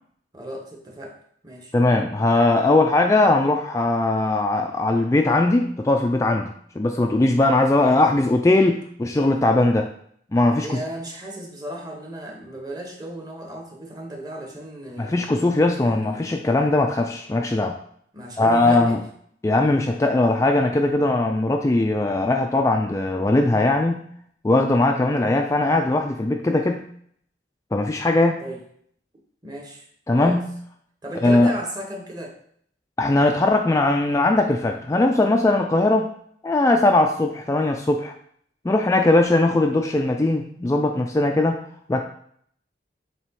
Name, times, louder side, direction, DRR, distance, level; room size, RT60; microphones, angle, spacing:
voice 1, 0.3-1.2 1.4-1.7 10.6-15.2 15.8-16.3 18.1-19.0 28.4-28.6 29.4-30.4 31.0-32.4, equal, 20° right, 1 dB, 1.1 m, -35 dB
voice 2, 1.7-6.5 6.8-9.9 10.3-10.8 15.0-17.8 18.4-19.0 19.4-24.0 24.4-26.9 27.7-28.4 30.1-30.5 31.2-31.5 33.0-36.1 36.4-38.1 38.6-41.6 41.9-42.0, left 2 dB, 15° left, 3 dB, 0.3 m, -20 dB
7.3 x 3.0 x 4.7 m, 0.64 s
head